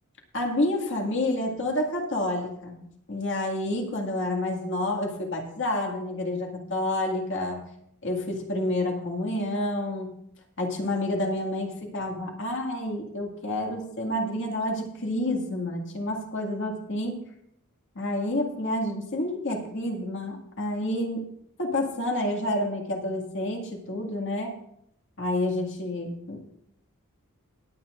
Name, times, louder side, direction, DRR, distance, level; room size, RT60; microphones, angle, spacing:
voice 1, 0.3-7.6 8.0-10.1 10.6-17.2 18.0-21.3 21.6-24.5 25.2-26.4, left 1 dB, 55° left, 1 dB, 2.1 m, -29 dB
19.5 x 8.8 x 2.5 m, 0.74 s
head